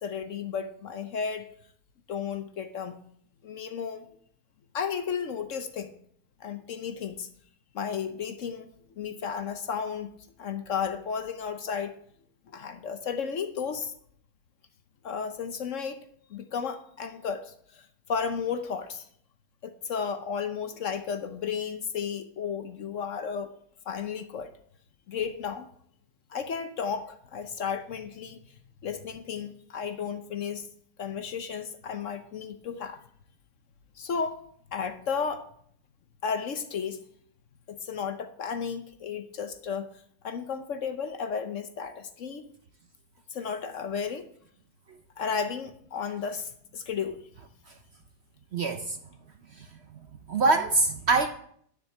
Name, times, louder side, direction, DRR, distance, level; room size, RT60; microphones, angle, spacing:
voice 1, 0.0-1.5 2.1-2.9 3.4-4.1 4.7-5.9 6.4-7.3 7.7-8.7 9.0-10.1 10.4-11.9 12.5-13.9 15.0-16.0 16.3-19.1 19.6-23.5 23.9-24.5 25.1-25.7 26.3-28.4 28.8-30.7 31.0-33.0 34.0-34.4 34.7-35.5 36.2-37.0 37.7-39.9 40.2-42.4 43.3-44.3 45.2-47.2, left 6 dB, 60° left, 1.0 m, -33 dB
voice 2, 48.5-49.0 49.6-49.7 50.3-51.3, right 3 dB, 55° right, 0.8 m, -24 dB
10.0 x 7.2 x 7.0 m
omnidirectional pair, 1.7 m